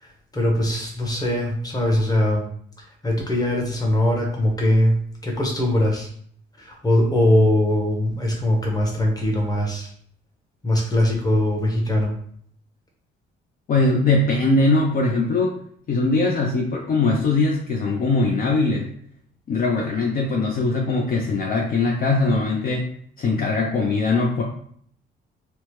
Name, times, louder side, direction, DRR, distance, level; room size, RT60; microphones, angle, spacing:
voice 1, 0.0-2.5 2.8-5.0 5.2-6.1 6.6-9.9 10.6-12.1, left 1 dB, 20° left, 0 dB, 0.9 m, -21 dB
voice 2, 13.7-15.5 15.9-18.9 19.5-22.9 23.2-24.4, left 3 dB, 45° left, 0 dB, 0.5 m, -21 dB
2.9 x 2.1 x 3.1 m, 0.62 s
cardioid pair, 90°, 20 cm